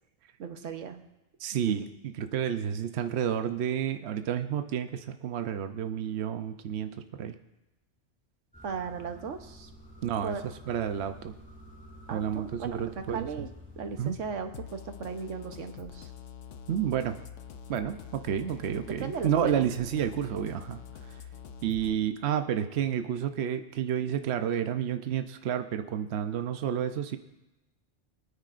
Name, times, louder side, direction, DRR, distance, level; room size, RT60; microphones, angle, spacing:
voice 1, 0.4-1.0 1.5-1.8 8.6-9.7 10.2-10.4 12.1-13.5 13.8-16.1 18.9-19.7, right 5 dB, 90° right, 7 dB, 1.3 m, -37 dB
voice 2, 1.4-6.9 7.2-7.3 10.0-10.3 10.7-11.3 12.1-13.3 14.0-14.2 16.7-17.2 17.7-21.2 21.6-27.2, right 9 dB, 65° right, 8 dB, 0.9 m, -30 dB
sound 1, 8.5-14.6, left 1 dB, 5° left, 3.1 m, -49 dB
sound 2, 14.5-21.9, left 7 dB, 85° left, 1.0 m, -45 dB
23.0 x 9.8 x 2.5 m, 0.98 s
omnidirectional pair, 1.2 m